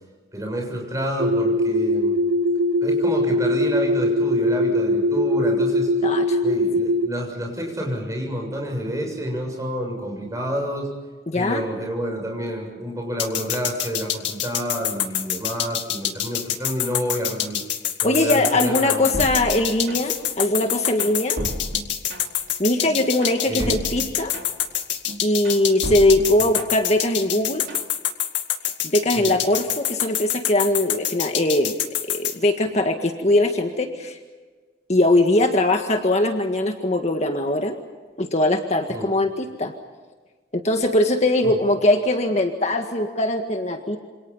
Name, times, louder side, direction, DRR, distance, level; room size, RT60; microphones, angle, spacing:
voice 1, 0.3-2.2 2.8-5.9 6.4-10.9 11.3-17.6 18.0-19.2 23.5-23.8 26.4-26.5 29.2-29.4 38.9-39.1 41.4-41.6, equal, 20° right, 1 dB, 7.3 m, -29 dB
sound 1, 1.2-7.1, left 1 dB, 60° right, 1.0 m, -21 dB
voice 2, 6.0-6.4 11.3-11.6 18.0-21.4 22.6-24.3 25.2-27.6 28.8-31.8 32.1-34.2 34.9-37.8 38.2-39.7 40.5-44.0, left 1 dB, 40° left, 4 dB, 1.8 m, -21 dB
sound 2, 13.2-32.3, left 11 dB, 85° left, 2.2 m, -26 dB
sound 3, 19.1-20.3 20.6-22.5 22.8-24.7 25.1-27.0 27.3-27.9, right 1 dB, 80° right, 3.2 m, -33 dB
28.0 x 26.5 x 5.7 m, 1.4 s
head